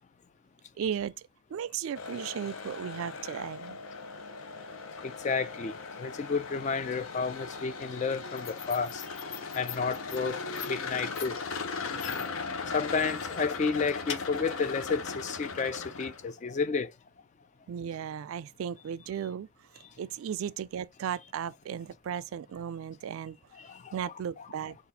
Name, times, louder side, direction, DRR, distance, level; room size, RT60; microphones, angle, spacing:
voice 1, 0.8-3.8 17.7-19.5 19.7-23.4 23.9-24.8, right 8 dB, 75° right, 0.3 m, -36 dB
sound 1, 2.0-16.3, left 4 dB, 75° left, 0.7 m, -38 dB
voice 2, 5.0-9.2 9.5-11.4 12.7-16.9 23.6-24.1, left 5 dB, 35° left, 0.3 m, -31 dB
4.1 x 2.5 x 4.0 m
head